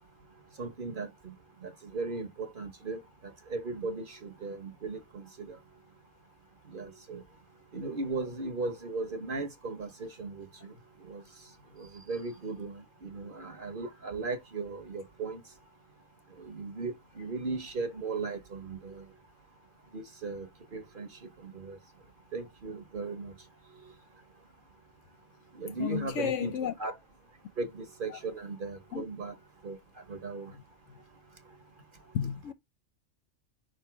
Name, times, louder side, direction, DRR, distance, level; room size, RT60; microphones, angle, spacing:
voice 1, 0.6-1.3 1.6-3.0 3.5-5.6 6.7-7.2 7.7-10.7 11.1-11.2 11.8-15.4 16.4-19.0 19.9-20.5 20.7-21.1 21.4-21.8 22.3-23.3 25.5-26.5 26.8-26.9 27.6-29.3 29.6-29.8 30.1-30.5, right 3 dB, 45° right, 1.0 m, -37 dB
voice 2, 25.8-26.7 28.1-28.2 28.9-29.0 32.1-32.5, left 8 dB, 65° left, 1.0 m, -32 dB
5.4 x 3.8 x 4.5 m
omnidirectional pair, 1.4 m